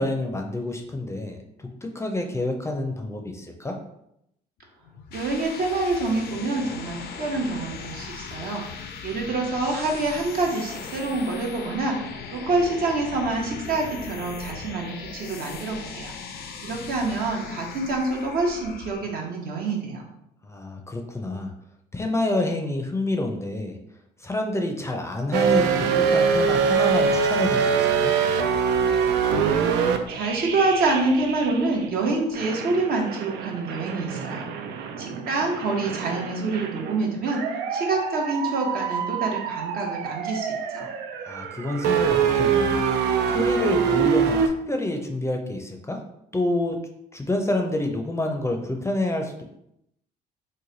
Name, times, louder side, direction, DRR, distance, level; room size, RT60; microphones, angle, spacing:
voice 1, 0.0-3.8 20.4-21.5 21.9-23.8 24.2-28.1 41.3-42.8 43.3-44.4 44.7-46.0 46.3-46.8 47.1-49.4, left 1 dB, 15° left, 3 dB, 0.5 m, -28 dB
sound 1, 4.8-19.4, left 6 dB, 65° left, 0.5 m, -39 dB
voice 2, 5.1-8.6 9.0-16.1 16.6-20.1 30.1-34.5 35.0-40.9, right 3 dB, 60° right, 0 dB, 0.9 m, -26 dB
sound 2, 25.3-31.9 32.3-44.5, right 6 dB, 80° right, 0.4 m, -24 dB
3.1 x 2.2 x 3.9 m, 0.79 s
supercardioid pair, 80°, 17 cm